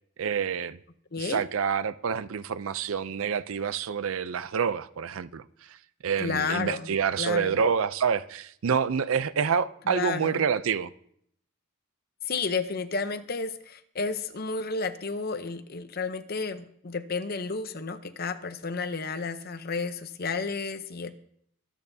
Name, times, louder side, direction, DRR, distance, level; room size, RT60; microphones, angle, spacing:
voice 1, 0.2-0.8 1.2-5.4 6.0-10.9, right 6 dB, 70° right, 0.5 m, -27 dB
voice 2, 6.2-6.9 7.2-7.6 9.9-10.4 12.3-21.2, left 4 dB, 45° left, 0.7 m, -32 dB
23.5 x 9.0 x 2.7 m
head